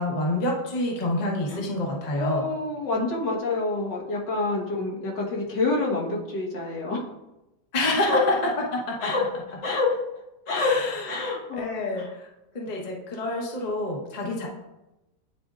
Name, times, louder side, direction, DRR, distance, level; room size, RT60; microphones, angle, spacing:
voice 1, 0.0-2.5 7.7-9.1 10.5-12.3 12.5-14.5, left 1 dB, 30° left, -1 dB, 0.9 m, -27 dB
voice 2, 2.1-7.0 8.0-8.2 9.0-9.2 9.6-10.0 10.5-10.7 11.1-12.1 14.2-14.4, left 3 dB, 75° left, -3 dB, 2.0 m, -27 dB
9.6 x 4.2 x 2.4 m, 0.96 s
omnidirectional pair, 1.9 m